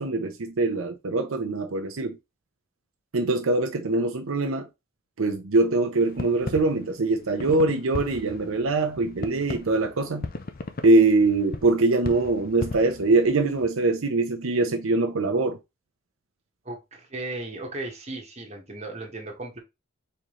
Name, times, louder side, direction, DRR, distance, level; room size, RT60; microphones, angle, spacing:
voice 1, 0.0-2.2 3.1-4.6 5.2-10.3 10.8-15.6, right 2 dB, 85° right, 0.7 m, -23 dB
sound 1, 6.0-13.7, left 3 dB, 45° left, 0.6 m, -37 dB
voice 2, 16.6-19.6, right 2 dB, 35° right, 1.6 m, -36 dB
4.4 x 3.7 x 3.1 m
head